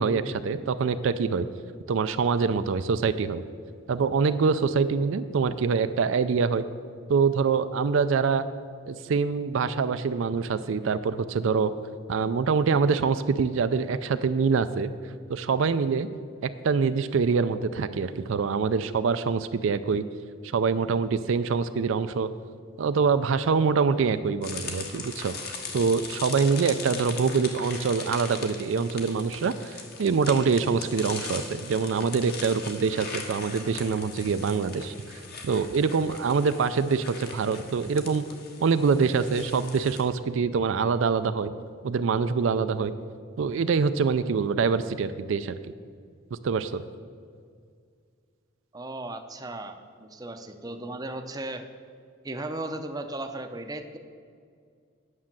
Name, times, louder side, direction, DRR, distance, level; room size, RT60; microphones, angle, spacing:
voice 1, 0.0-1.5 1.9-3.4 3.9-6.6 7.1-8.5 8.9-11.7 12.1-14.9 15.3-16.1 16.4-20.0 20.4-22.3 22.8-34.9 35.4-38.2 38.6-41.5 41.8-42.9 43.4-45.6 46.4-46.8, right 5 dB, 70° right, 11 dB, 0.4 m, -25 dB
sound 1, 24.4-40.0, left 4 dB, 50° left, 1.3 m, -40 dB
voice 2, 48.7-51.6 52.2-54.0, right 2 dB, 20° right, 7 dB, 0.6 m, -36 dB
9.7 x 6.3 x 7.3 m, 2.1 s
head